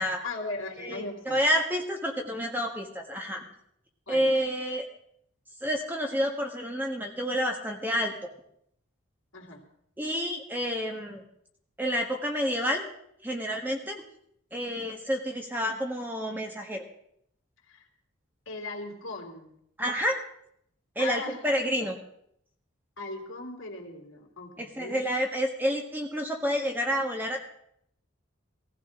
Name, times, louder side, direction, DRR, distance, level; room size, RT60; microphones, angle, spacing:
voice 1, 0.2-1.4 4.1-4.3 9.3-9.7 17.7-17.8 18.5-19.5 21.0-21.4 23.0-25.0, left 3 dB, 80° left, 0 dB, 3.1 m, -38 dB
voice 2, 0.8-3.4 4.1-4.9 5.6-8.1 10.0-11.2 11.8-12.8 13.2-14.0 14.5-16.8 19.8-20.2 20.9-22.0 24.6-27.5, equal, 10° right, 2 dB, 1.5 m, -29 dB
18.0 x 15.0 x 3.7 m, 0.70 s
head